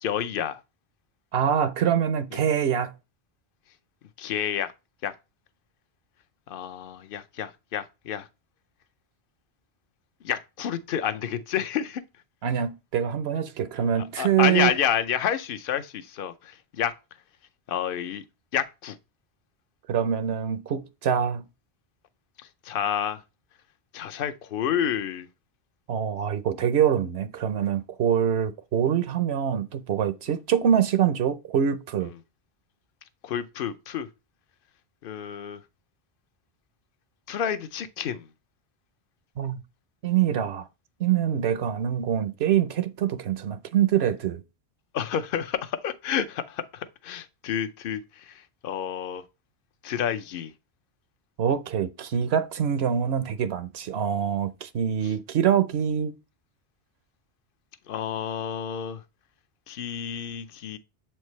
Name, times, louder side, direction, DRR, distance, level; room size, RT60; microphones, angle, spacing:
voice 1, 0.0-0.6 4.2-4.7 5.0-5.1 6.5-8.3 10.2-12.0 13.9-16.9 17.7-18.2 18.5-19.0 22.6-23.2 23.9-25.3 33.2-34.1 35.0-35.6 37.3-38.2 44.9-49.2 49.8-50.5 57.9-59.0 59.7-60.8, left 9 dB, 60° left, 0.8 m, -29 dB
voice 2, 1.3-2.9 12.4-14.8 19.9-21.4 25.9-32.1 39.4-39.6 40.0-40.7 41.0-44.4 51.4-56.1, right 9 dB, 75° right, 0.9 m, -25 dB
7.3 x 4.5 x 3.1 m
omnidirectional pair, 1.1 m